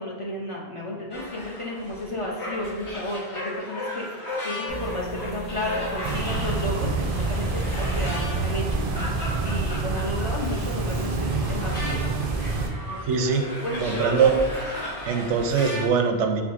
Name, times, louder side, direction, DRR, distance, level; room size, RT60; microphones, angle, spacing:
voice 1, 0.0-8.8 9.4-12.0 12.9-13.3 13.6-14.3, left 1 dB, 40° left, -4 dB, 0.5 m, -33 dB
sound 1, 1.1-15.9, left 1 dB, 75° left, 1.5 m, -36 dB
sound 2, 4.7-9.7, right 2 dB, 60° left, 1.0 m, -37 dB
sound 3, 6.0-12.7, right 3 dB, 65° right, 0.3 m, -27 dB
voice 2, 13.1-13.4 13.8-14.3 15.0-16.4, right 6 dB, 90° right, 5 dB, 0.9 m, -22 dB
4.5 x 3.8 x 2.4 m, 1.4 s
omnidirectional pair, 1.1 m